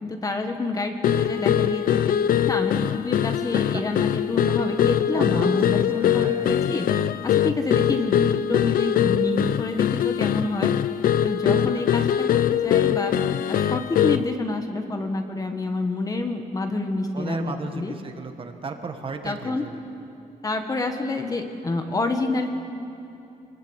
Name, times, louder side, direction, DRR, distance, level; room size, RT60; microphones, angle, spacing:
voice 1, 0.0-2.1 2.4-6.9 7.2-10.7 11.2-13.2 13.5-17.9 19.2-19.6 20.4-22.5, left 2 dB, 25° left, 5 dB, 1.6 m, -28 dB
sound 1, 1.0-14.4, left 10 dB, 70° left, 0.6 m, -22 dB
voice 2, 5.1-5.6 5.9-6.5 11.6-11.7 17.1-19.8, right 4 dB, 35° right, 5 dB, 1.7 m, -35 dB
27.0 x 20.5 x 8.2 m, 2.7 s
wide cardioid pair, 175°, 15 cm